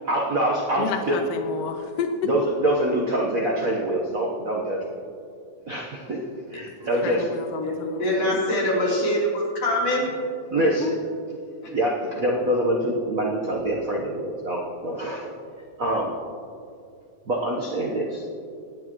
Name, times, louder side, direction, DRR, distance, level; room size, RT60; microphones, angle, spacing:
voice 1, 0.1-1.2 2.2-4.8 5.7-6.2 6.5-7.3 10.5-10.9 11.7-15.3 15.8-16.2 17.3-18.2, right 1 dB, 70° right, -2 dB, 0.8 m, -25 dB
voice 2, 0.8-2.3 7.0-8.5 10.6-10.9, left 6 dB, 80° left, 7 dB, 1.4 m, -31 dB
voice 3, 7.6-10.1 11.6-11.7, left 1 dB, 60° left, -6 dB, 4.6 m, -24 dB
25.0 x 9.9 x 3.1 m, 2.4 s
omnidirectional pair, 3.3 m